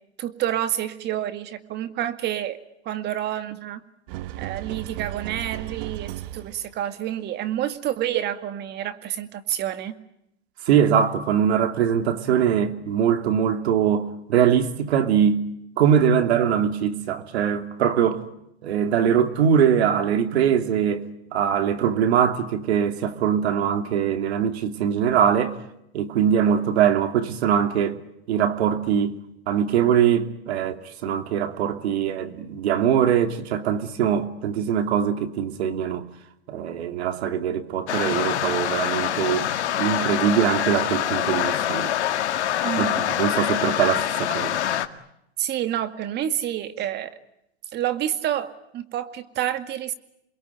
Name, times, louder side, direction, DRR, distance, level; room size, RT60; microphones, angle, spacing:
voice 1, 0.2-2.6 2.9-3.8 4.4-10.0 42.6-43.0 45.4-47.1 47.7-49.9, right 11 dB, 30° right, 2.1 m, -28 dB
sound 1, 4.1-6.8, right 14 dB, 50° right, 1.2 m, -35 dB
voice 2, 10.7-15.4 15.8-18.2 18.6-21.0 21.3-25.5 25.9-28.0 28.3-29.2 29.5-36.1 36.5-39.5 39.8-41.9 42.8-44.6, right 8 dB, 70° right, 2.9 m, -22 dB
sound 2, 37.9-44.9, left 11 dB, 80° left, 2.1 m, -25 dB
28.5 x 22.0 x 9.4 m
hypercardioid pair, 135°, 34 cm